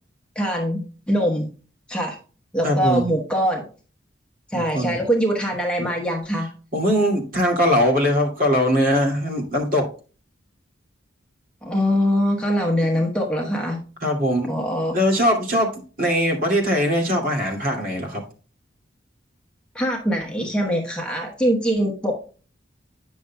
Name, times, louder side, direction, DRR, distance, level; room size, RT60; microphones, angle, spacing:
voice 1, 0.3-1.5 1.9-2.2 2.5-3.7 4.5-6.5 11.6-13.8 14.5-15.0 19.7-22.2, equal, 5° left, 0 dB, 1.1 m, -23 dB
voice 2, 2.6-3.0 4.5-5.0 6.7-9.9 14.0-14.5 14.9-18.2, equal, 50° right, 0 dB, 2.4 m, -21 dB
9.5 x 6.5 x 2.3 m, 0.36 s
head